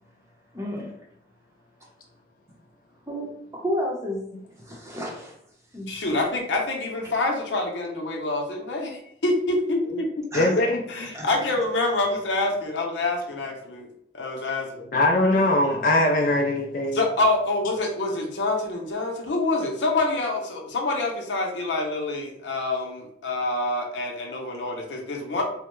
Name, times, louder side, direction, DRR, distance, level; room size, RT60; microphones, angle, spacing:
voice 1, 0.5-1.0 3.1-3.3 3.5-4.3 4.6-5.3 5.7-6.2 10.3-10.5 11.1-11.3, equal, 15° right, -2 dB, 0.7 m, -31 dB
voice 2, 5.9-10.3 10.9-13.9 14.1-14.9 16.9-25.4, left 2 dB, 90° left, 2 dB, 0.7 m, -26 dB
voice 3, 10.3-10.8 14.9-17.0, left 1 dB, 50° left, 1 dB, 0.4 m, -21 dB
3.5 x 2.1 x 3.0 m, 0.72 s
head